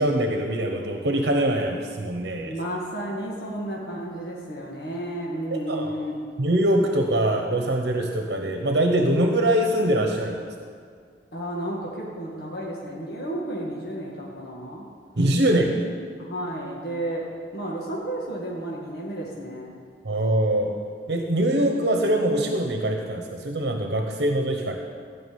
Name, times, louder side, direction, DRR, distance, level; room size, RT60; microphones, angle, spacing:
voice 1, 0.0-2.5 5.5-5.9 6.4-10.4 15.2-15.8 20.0-20.8 21.1-24.8, right 1 dB, 70° right, 3 dB, 1.0 m, -23 dB
voice 2, 2.4-6.2 11.3-14.9 16.2-17.3 17.5-19.7, right 1 dB, 65° left, -4 dB, 1.9 m, -32 dB
14.5 x 6.1 x 9.4 m, 2.1 s
head